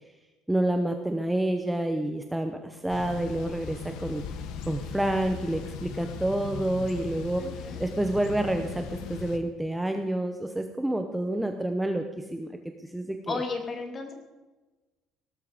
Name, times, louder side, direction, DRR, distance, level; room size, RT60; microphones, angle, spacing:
voice 1, 0.5-4.2 4.7-12.5 12.8-13.4, right 1 dB, 5° right, 5 dB, 0.8 m, -28 dB
Thunder / Bicycle, 2.9-9.4, left 6 dB, 70° left, 1.5 m, -38 dB
voice 2, 7.4-7.8 13.3-14.1, left 3 dB, 25° left, 4 dB, 2.4 m, -33 dB
17.5 x 13.0 x 5.0 m, 1.2 s
cardioid pair, 165°, 0 cm